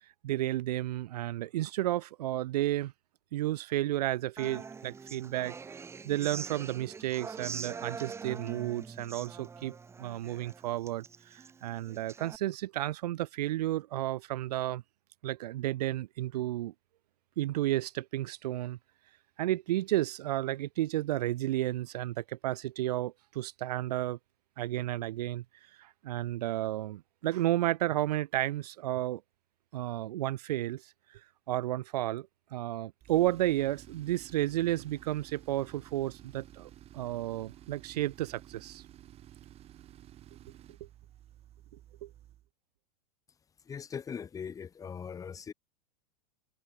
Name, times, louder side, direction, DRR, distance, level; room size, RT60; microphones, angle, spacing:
voice 1, 0.2-2.9 3.3-5.5 6.0-14.8 15.2-16.7 17.4-18.8 19.4-24.2 24.6-25.4 25.8-29.2 29.7-31.2 31.5-38.8 42.0-42.1, right 15 dB, 85° right, 0.5 m, -32 dB
Human voice / Acoustic guitar, 4.4-12.4, right 5 dB, 15° right, 1.5 m, -44 dB
Tools, 33.0-42.5, right 12 dB, 30° right, 5.6 m, -53 dB
voice 2, 43.7-45.5, left 6 dB, 15° left, 1.7 m, -40 dB
supercardioid pair, 135°, 20 cm